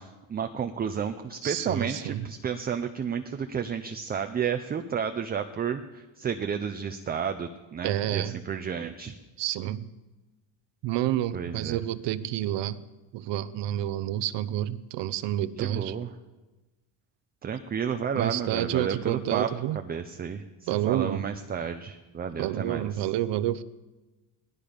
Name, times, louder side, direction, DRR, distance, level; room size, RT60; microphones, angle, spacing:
voice 1, 0.0-9.1 11.3-11.8 15.6-16.1 17.4-19.5 19.7-23.0, right 7 dB, 20° right, 7 dB, 0.4 m, -32 dB
voice 2, 1.4-2.3 7.8-8.4 9.4-9.9 10.8-12.8 13.1-15.9 18.1-19.8 20.7-21.2 22.4-23.6, right 13 dB, 60° right, 13 dB, 0.7 m, -29 dB
18.0 x 12.5 x 5.0 m, 1.2 s
cardioid pair, 150°, 49 cm